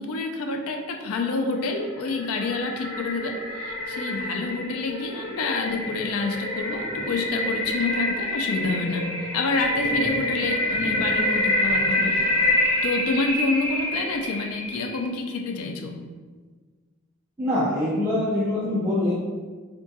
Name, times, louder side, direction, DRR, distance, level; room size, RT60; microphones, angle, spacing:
voice 1, 0.0-12.2 12.8-16.0, left 3 dB, 80° left, 4 dB, 0.4 m, -28 dB
sound 1, 1.7-15.1, left 1 dB, 50° left, 1.3 m, -27 dB
voice 2, 17.4-19.1, left 1 dB, 10° right, -10 dB, 0.4 m, -24 dB
3.6 x 2.3 x 2.6 m, 1.4 s
head